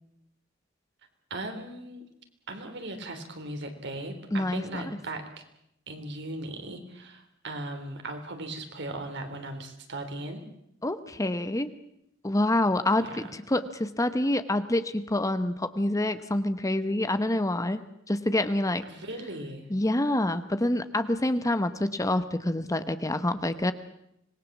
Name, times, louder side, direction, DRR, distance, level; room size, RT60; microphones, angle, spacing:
voice 1, 1.3-2.0 2.5-5.4 5.9-10.4 13.0-13.2 18.9-19.7, right 1 dB, 60° right, 6 dB, 3.5 m, -38 dB
voice 2, 4.3-4.8 10.8-11.7 12.2-18.8 19.7-23.7, left 1 dB, 15° left, 11 dB, 1.0 m, -27 dB
26.0 x 20.0 x 7.3 m, 0.78 s
head